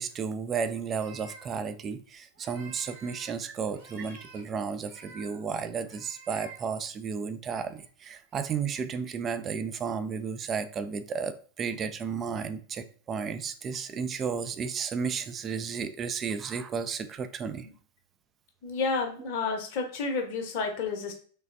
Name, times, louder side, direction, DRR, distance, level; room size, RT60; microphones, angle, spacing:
voice 1, 0.0-17.7, right 6 dB, 25° right, 10 dB, 0.3 m, -33 dB
sound 1, 0.9-1.5 2.3-3.3 3.7-4.4 4.8-5.4 5.8-6.6 7.5-7.9 8.3-8.7, right 3 dB, 65° right, 1.4 m, -50 dB
voice 2, 18.6-21.1, left 4 dB, 45° left, 3 dB, 0.7 m, -30 dB
3.2 x 3.1 x 2.5 m, 0.43 s
figure-of-eight pair, 90°, 0 cm